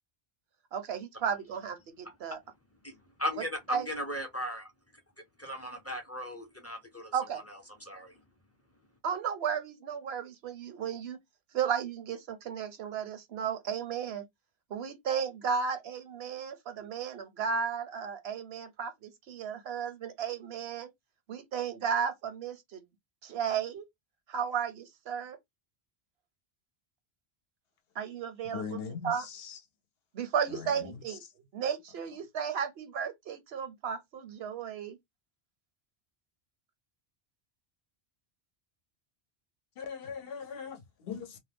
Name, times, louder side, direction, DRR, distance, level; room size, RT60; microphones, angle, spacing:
voice 1, 0.7-2.4 3.7-3.8 7.1-7.4 9.0-11.2 11.5-14.2 14.7-20.9 21.3-22.8 23.2-23.8 24.3-25.4 28.0-28.6 29.0-29.2 30.1-31.2 31.5-35.0, right 7 dB, 75° right, 0.9 m, -34 dB
voice 2, 3.2-4.7 5.4-8.1, equal, 20° left, 0.5 m, -37 dB
voice 3, 28.4-29.6 30.5-31.3 39.8-41.4, left 6 dB, 70° left, 0.8 m, -41 dB
2.7 x 2.2 x 3.4 m
omnidirectional pair, 1.1 m